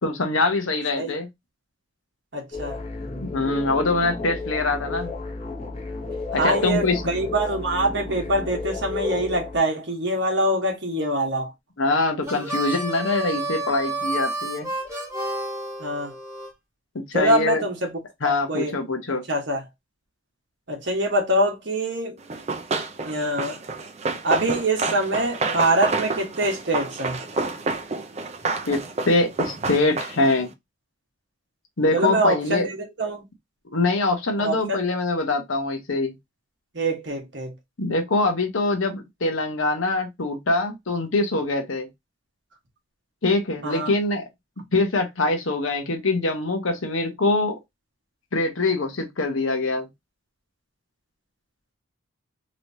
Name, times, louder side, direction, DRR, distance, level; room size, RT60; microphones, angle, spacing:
voice 1, 0.0-1.3 3.2-5.1 6.3-7.0 11.8-14.7 16.9-17.6 18.2-19.2 28.7-30.5 31.8-32.7 33.7-36.1 37.8-41.9 43.2-44.2 44.7-47.6 48.3-49.9, left 2 dB, 70° left, 0.9 m, -24 dB
voice 2, 2.3-2.8 6.4-11.5 15.8-16.1 17.1-18.0 18.5-18.8 19.3-19.6 20.7-22.2 23.0-23.6 24.2-27.2 31.9-33.2 34.4-34.8 36.7-37.5 43.6-43.9, right 1 dB, 55° right, 1.2 m, -24 dB
sound 1, 2.5-9.6, left 3 dB, 30° left, 0.8 m, -32 dB
Harmonica, 12.2-16.5, right 2 dB, 15° right, 1.3 m, -30 dB
Run, 22.3-30.5, right 3 dB, 30° right, 0.4 m, -29 dB
3.1 x 3.0 x 2.6 m
head